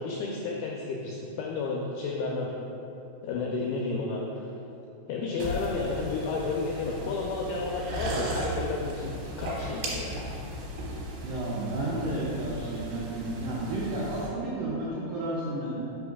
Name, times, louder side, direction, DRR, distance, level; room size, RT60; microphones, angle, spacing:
voice 1, 0.0-2.5 3.2-4.5 5.1-10.3, left 3 dB, 90° left, -2 dB, 2.2 m, -32 dB
sound 1, 5.4-14.3, right 1 dB, 70° right, 2.6 m, -36 dB
voice 2, 11.2-15.8, right 2 dB, 90° right, -7 dB, 1.9 m, -32 dB
6.0 x 5.0 x 3.5 m, 2.9 s
omnidirectional pair, 4.9 m